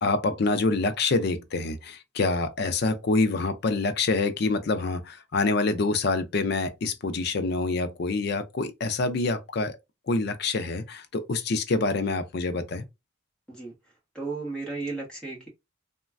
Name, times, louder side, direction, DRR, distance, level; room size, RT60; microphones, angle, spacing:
voice 1, 0.0-9.7 10.1-12.8, left 3 dB, 55° left, 0.4 m, -26 dB
voice 2, 14.1-15.5, right 3 dB, 5° left, 1.1 m, -34 dB
3.1 x 2.2 x 2.4 m
head